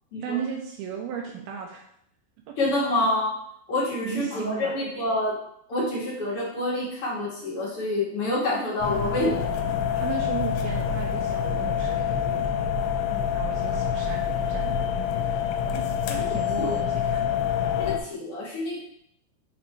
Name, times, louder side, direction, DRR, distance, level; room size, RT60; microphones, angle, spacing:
voice 1, 0.2-1.9 2.5-2.6 4.0-4.8 8.9-12.5 13.3-14.8 15.7-17.4, right 7 dB, 80° right, 1 dB, 2.4 m, -36 dB
voice 2, 2.6-3.3 3.7-5.4 5.7-9.3 13.1-13.3 16.1-16.8 17.8-18.8, left 1 dB, 50° left, -6 dB, 1.9 m, -27 dB
sound 1, 8.8-18.0, left 8 dB, 85° left, 2.7 m, -26 dB
6.8 x 4.1 x 4.5 m, 0.71 s
omnidirectional pair, 5.0 m